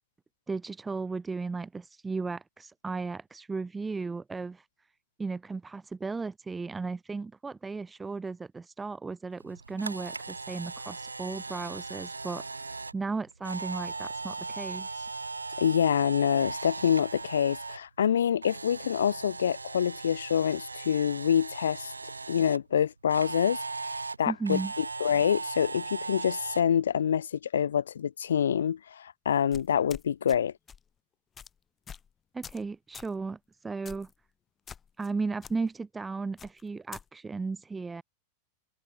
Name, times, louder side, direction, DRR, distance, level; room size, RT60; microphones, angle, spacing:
voice 1, 0.5-4.6 5.2-12.5 12.9-15.1 24.3-24.7 32.3-33.4 33.6-34.1 35.0-38.0, right 4 dB, 10° right, 1.9 m, -35 dB
Camera, 9.4-17.8 18.1-22.6 23.1-26.6, right 3 dB, 80° right, 2.0 m, -38 dB
voice 2, 15.6-21.9 22.3-23.6 24.2-30.5, left 8 dB, 65° left, 0.6 m, -26 dB
sound 1, 29.5-30.4 30.7-30.9 31.4-31.5 31.9-32.1 32.4-32.7 32.9-33.1 33.9-34.1 34.7-35.1 35.4-35.5 36.4-37.0, left 7 dB, 20° left, 3.9 m, -46 dB
figure-of-eight pair, 90°, 0 cm